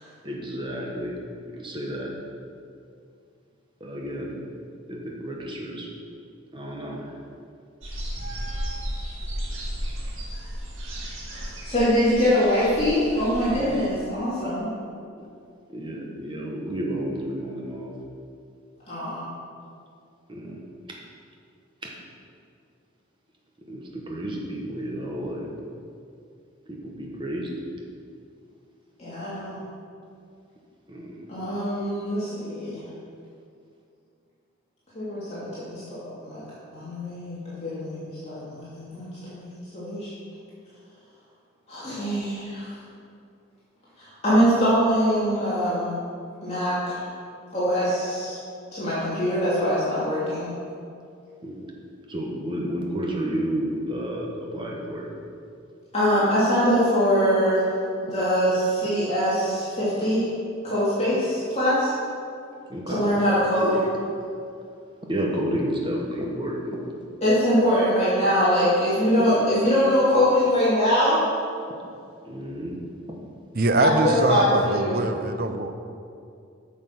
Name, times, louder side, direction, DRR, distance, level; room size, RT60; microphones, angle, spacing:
voice 1, 0.2-1.2 1.6-2.1 3.8-4.4 4.9-5.9 6.5-7.1 15.7-17.9 20.3-20.6 21.8-21.9 23.7-25.5 26.7-27.6 30.9-31.2 51.4-51.7 52.1-55.1 62.7-63.1 63.6-63.8 65.1-66.8 72.3-72.8, right 1 dB, 25° right, -2 dB, 1.3 m, -31 dB
sound 1, 7.8-13.9, equal, 70° right, 2.0 m, -34 dB
voice 2, 11.6-14.7 18.9-19.2 29.0-29.6 31.3-32.8 34.9-36.4 36.7-40.1 41.7-42.7 44.0-45.9 46.4-47.0 47.5-48.4 48.7-50.5 55.9-57.7 58.0-60.3 60.6-61.9 62.9-63.7 67.2-71.2 73.8-75.0, equal, 30° left, -11 dB, 2.7 m, -23 dB
voice 3, 73.5-75.7, right 2 dB, 45° right, 7 dB, 0.6 m, -23 dB
9.2 x 6.3 x 6.1 m, 2.4 s
head